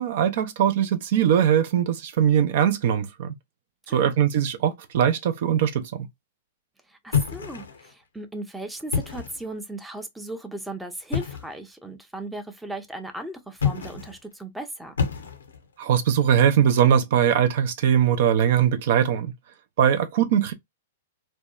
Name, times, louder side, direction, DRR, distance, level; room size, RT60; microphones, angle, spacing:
voice 1, 0.0-3.3 3.9-6.1 15.8-19.3 19.8-20.5, right 9 dB, 60° right, 0.4 m, -21 dB
voice 2, 6.9-14.9, right 1 dB, 5° right, 0.5 m, -37 dB
sound 1, 7.1-7.9 8.8-9.5 11.1-11.6 13.5-14.2 15.0-15.7, left 7 dB, 80° left, 0.5 m, -28 dB
2.6 x 2.2 x 2.2 m
hypercardioid pair, 110°, 0 cm